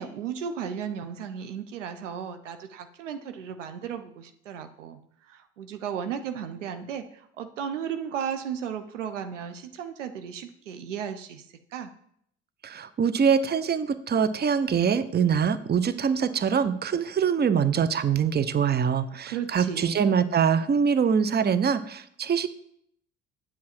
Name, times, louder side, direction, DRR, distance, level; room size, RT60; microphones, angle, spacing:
voice 1, 0.0-5.0 5.3-11.5 11.7-11.9 19.3-20.1, right 8 dB, 90° right, 9 dB, 0.7 m, -35 dB
voice 2, 12.6-22.5, right 7 dB, 30° right, 14 dB, 0.7 m, -24 dB
8.6 x 7.5 x 4.3 m, 0.70 s
hypercardioid pair, 55°, 36 cm